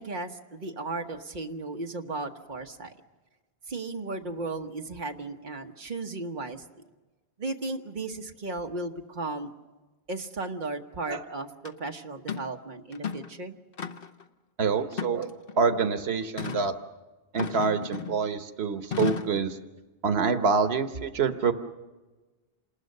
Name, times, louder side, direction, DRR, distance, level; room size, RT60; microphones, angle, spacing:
voice 1, 0.0-2.9 3.7-6.6 7.4-9.5 10.1-13.6, right 3 dB, 50° right, 4 dB, 1.3 m, -35 dB
sound 1, 11.6-11.7 12.3-12.5 12.9-13.3 13.8-14.2 14.9-15.6 16.4-16.7 17.4-18.2 18.9-19.4, left 7 dB, 65° left, 1.2 m, -34 dB
voice 2, 14.6-15.3 15.5-16.7 17.3-19.6 20.0-21.5, right 5 dB, 85° right, 9 dB, 1.3 m, -26 dB
27.5 x 20.0 x 6.6 m, 1.2 s
omnidirectional pair, 1.0 m